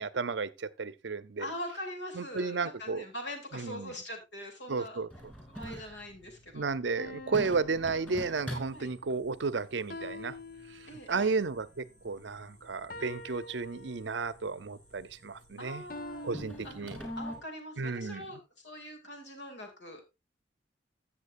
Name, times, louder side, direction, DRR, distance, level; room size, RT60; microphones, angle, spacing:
voice 1, 0.0-1.5 2.1-3.0 3.5-3.9 4.7-5.3 6.5-10.4 10.7-10.8 11.1-15.8 16.2-17.0 17.8-18.3, right 4 dB, 70° right, 0.7 m, -33 dB
voice 2, 1.4-5.0 5.5-6.7 8.7-8.9 10.9-11.4 15.6-16.4 16.6-20.0, left 1 dB, 65° left, 2.6 m, -43 dB
sound 1, 5.1-17.4, equal, 10° left, 2.9 m, -47 dB
sound 2, 7.0-8.8 9.9-11.4 12.9-14.4 15.9-17.0, left 2 dB, 50° left, 0.9 m, -46 dB
15.0 x 7.3 x 2.6 m
head